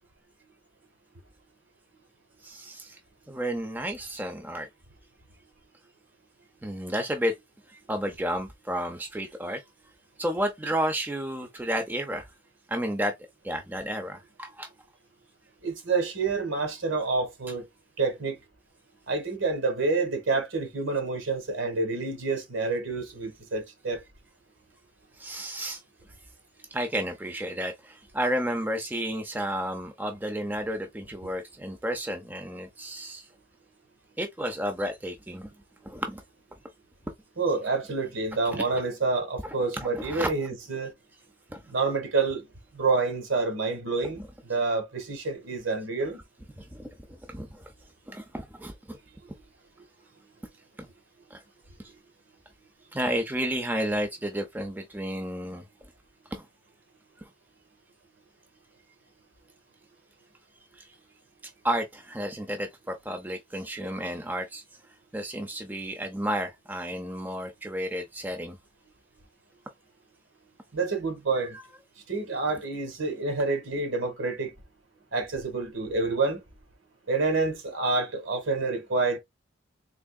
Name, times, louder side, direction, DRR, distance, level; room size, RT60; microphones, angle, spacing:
voice 1, 2.4-3.0 3.3-4.7 6.6-7.4 7.7-9.6 10.2-12.2 12.7-13.1 13.4-14.7 25.2-25.8 26.7-33.3 34.2-35.5 35.8-36.2 38.5-38.6 39.4-40.3 41.5-41.6 46.6-46.9 47.3-47.7 48.1-49.0 50.8-50.9 51.3-51.4 52.9-55.6 56.3-56.4 57.2-57.3 60.8-60.9 61.6-64.6 65.1-68.6 71.4-71.6, equal, 10° right, 0.5 m, -32 dB
voice 2, 15.6-17.6 18.0-18.4 19.1-24.0 37.4-40.9 41.7-42.4 42.7-46.2 70.7-71.6 72.1-74.5 75.1-76.4 77.1-79.2, right 3 dB, 75° right, 1.3 m, -28 dB
3.5 x 3.4 x 2.2 m
head